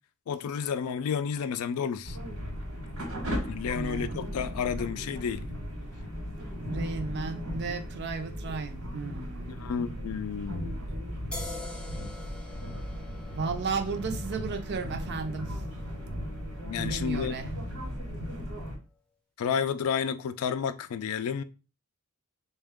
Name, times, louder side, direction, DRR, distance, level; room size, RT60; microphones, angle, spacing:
voice 1, 0.3-2.2 3.4-5.4 9.6-10.9 16.6-17.4 19.4-21.4, left 7 dB, 75° left, 0.3 m, -31 dB
sound 1, 2.0-18.8, equal, 70° right, 1.1 m, -37 dB
voice 2, 3.7-4.2 6.6-10.4 13.3-15.5 16.8-17.5, right 4 dB, 50° right, 0.5 m, -35 dB
sound 2, 11.3-18.6, left 3 dB, 5° left, 0.5 m, -47 dB
3.5 x 2.3 x 3.4 m
head